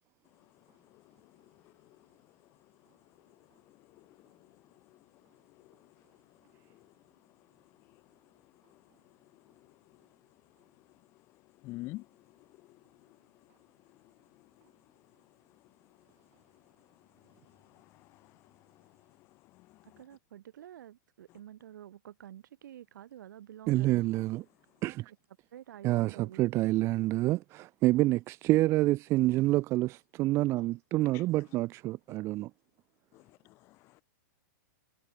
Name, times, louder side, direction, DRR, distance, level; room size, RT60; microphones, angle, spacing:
voice 1, 0.9-2.0 3.7-4.6 4.9-5.0 5.5-5.9 6.7-6.9 7.9-8.0 8.7-8.8 9.6-9.7 11.6-12.1 12.3-12.8 14.0-14.1 17.2-18.9 19.2-19.9 31.1-31.2 33.1-34.0, left 20 dB, 25° left, 0.4 m, -50 dB
voice 2, 19.8-24.1 25.5-26.5, right 11 dB, 70° right, 4.3 m, -49 dB
voice 3, 23.7-24.4 24.8-25.1 25.8-32.5, right 17 dB, 25° right, 1.1 m, -27 dB
supercardioid pair, 160°, 11 cm